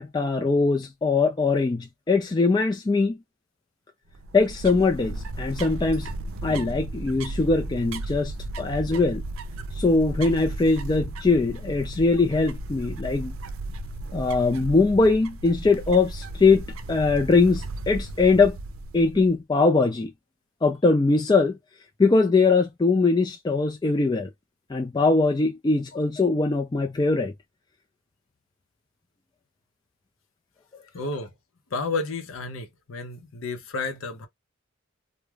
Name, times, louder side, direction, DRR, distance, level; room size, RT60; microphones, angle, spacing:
voice 1, 0.0-3.2 4.3-6.1 6.4-9.2 9.8-13.3 14.1-18.6 18.9-20.1 20.6-21.6 22.0-24.3 24.7-27.3, left 3 dB, 20° left, 0.3 m, -21 dB
sound 1, 4.1-19.3, right 2 dB, 90° right, 0.5 m, -35 dB
voice 2, 30.9-31.3 31.7-34.3, left 3 dB, 80° left, 0.7 m, -31 dB
2.3 x 2.1 x 3.2 m
head